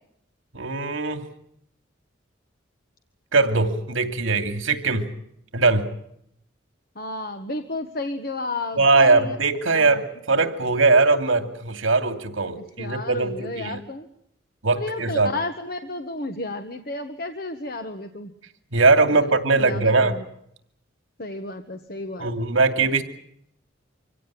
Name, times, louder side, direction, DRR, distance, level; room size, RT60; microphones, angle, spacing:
voice 1, 0.5-1.2 3.3-5.0 5.5-5.9 8.8-13.8 14.6-15.3 18.7-20.1 22.2-23.0, right 3 dB, 80° right, 7 dB, 2.6 m, -20 dB
voice 2, 6.9-9.4 9.7-10.0 12.5-14.1 14.7-18.3 19.1-20.2 21.2-22.3, left 2 dB, 50° left, 6 dB, 1.5 m, -32 dB
25.5 x 17.0 x 10.0 m, 0.74 s
head